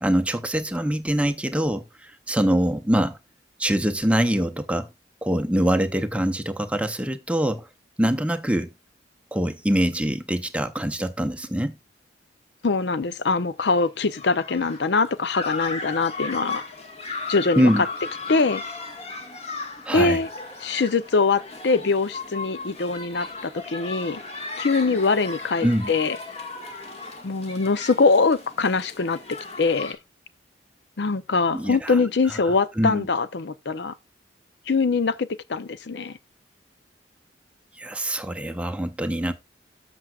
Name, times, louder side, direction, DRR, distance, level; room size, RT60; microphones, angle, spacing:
voice 1, 0.0-3.2 3.6-4.9 5.2-7.7 8.0-8.7 9.3-11.8 17.6-17.8 19.8-20.2 25.6-25.9 31.5-32.0 32.4-33.1 37.8-39.3, right 1 dB, 5° right, 0.6 m, -24 dB
voice 2, 12.6-16.6 17.3-17.9 18.3-18.6 19.9-20.3 20.6-24.2 24.6-26.2 27.2-30.0 31.0-33.9 34.7-36.2, left 4 dB, 70° left, 0.6 m, -23 dB
sound 1, 13.8-29.9, left 3 dB, 35° left, 1.6 m, -36 dB
13.5 x 6.1 x 2.4 m
head